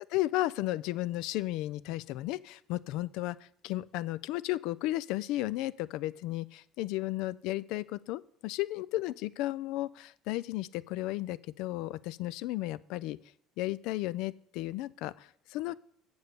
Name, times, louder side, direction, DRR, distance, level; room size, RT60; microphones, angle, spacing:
voice 1, 0.1-13.2 13.6-15.7, left 16 dB, 75° left, 19 dB, 0.3 m, -34 dB
7.9 x 5.4 x 6.6 m, 0.68 s
supercardioid pair, 75°, 0 cm